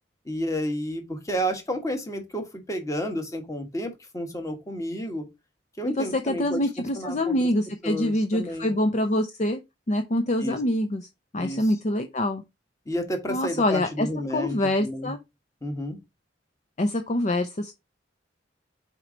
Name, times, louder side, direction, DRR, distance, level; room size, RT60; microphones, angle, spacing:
voice 1, 0.2-5.3 5.8-7.5 7.8-8.7 10.4-10.6 11.4-11.7 12.8-15.1 15.6-16.0, equal, 15° left, 1.4 m, -31 dB
voice 2, 5.8-9.6 9.9-11.0 11.3-12.4 13.3-14.1 14.3-15.2 16.8-17.7, left 1 dB, 40° left, 0.6 m, -25 dB
4.5 x 4.4 x 5.0 m
head